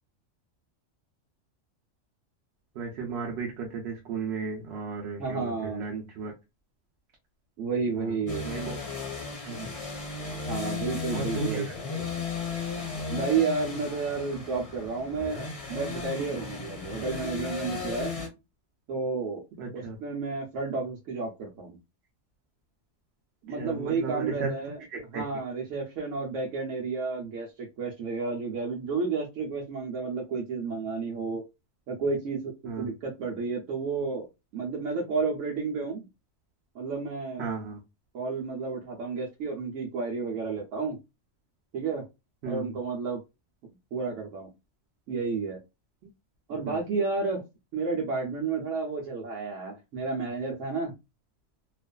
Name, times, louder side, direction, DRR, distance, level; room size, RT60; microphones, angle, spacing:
voice 1, 2.7-6.3 7.9-8.8 9.4-9.7 11.1-12.1 19.6-20.0 23.5-24.6 24.9-25.2 32.6-32.9 37.4-37.8 42.4-42.7 46.7-46.8, right 4 dB, 65° right, 0.8 m, -35 dB
voice 2, 5.2-5.8 7.6-8.5 10.5-11.7 13.1-18.2 18.9-19.4 19.7-21.8 23.4-24.8 25.1-31.4 31.9-32.5 32.8-34.2 34.5-36.1 36.7-37.5 38.1-41.0 41.7-42.0 42.5-43.2 43.9-44.5 45.1-45.6 46.5-47.4 47.7-50.9, right 4 dB, 90° right, 1.0 m, -31 dB
sound 1, 8.3-18.3, left 5 dB, 35° left, 0.6 m, -35 dB
2.4 x 2.4 x 2.2 m
omnidirectional pair, 1.3 m